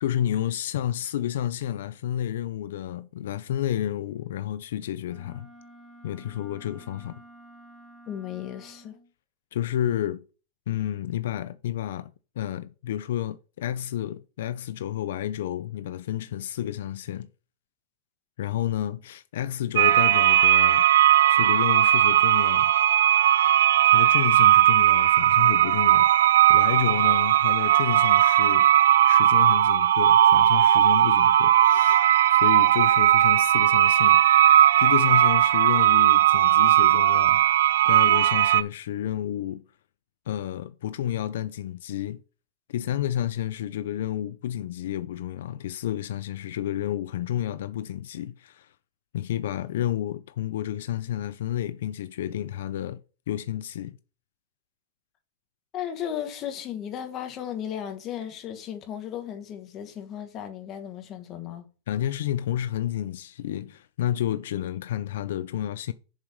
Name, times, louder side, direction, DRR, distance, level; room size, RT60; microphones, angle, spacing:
voice 1, 0.0-5.5 6.0-7.2 9.5-10.2 10.7-17.3 18.4-20.8 21.3-22.7 23.8-26.1 26.5-28.7 29.0-34.4 34.8-37.4 37.9-39.6 40.3-42.2 42.7-48.7 49.1-54.0 61.9-65.9, left 11 dB, 65° left, 0.4 m, -30 dB
Wind instrument woodwind instrument, 5.0-9.1, right 1 dB, ahead, 2.0 m, -50 dB
voice 2, 8.1-9.0 55.7-61.7, left 10 dB, 25° left, 1.2 m, -35 dB
sound 1, 19.8-38.6, right 12 dB, 85° right, 0.4 m, -18 dB
7.3 x 4.7 x 5.4 m
supercardioid pair, 170°, 0 cm